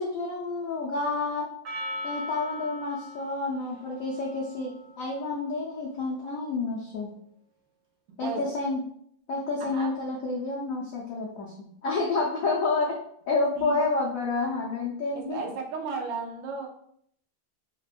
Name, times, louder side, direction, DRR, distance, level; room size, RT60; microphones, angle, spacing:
voice 1, 0.0-1.5 2.0-7.1 8.2-8.8 9.3-11.5 11.8-13.0 13.3-15.4, left 3 dB, 85° left, -4 dB, 0.7 m, -29 dB
Percussion, 1.6-6.2, left 1 dB, 60° right, 0.9 m, -40 dB
voice 2, 15.1-16.7, right 4 dB, 85° right, 2 dB, 1.3 m, -34 dB
3.4 x 2.2 x 2.4 m, 0.69 s
omnidirectional pair, 2.0 m